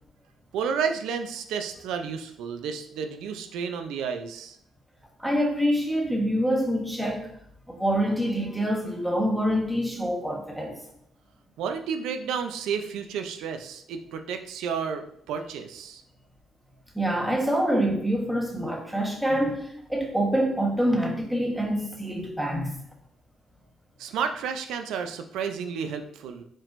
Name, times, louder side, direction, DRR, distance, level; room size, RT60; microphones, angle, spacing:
voice 1, 0.5-4.6 11.6-16.0 24.0-26.4, right 6 dB, 90° right, 7 dB, 0.5 m, -31 dB
voice 2, 5.2-7.3 7.7-10.8 16.9-22.8, equal, 5° right, -1 dB, 1.2 m, -26 dB
5.2 x 3.6 x 2.5 m, 0.66 s
cardioid pair, 90°, 0 cm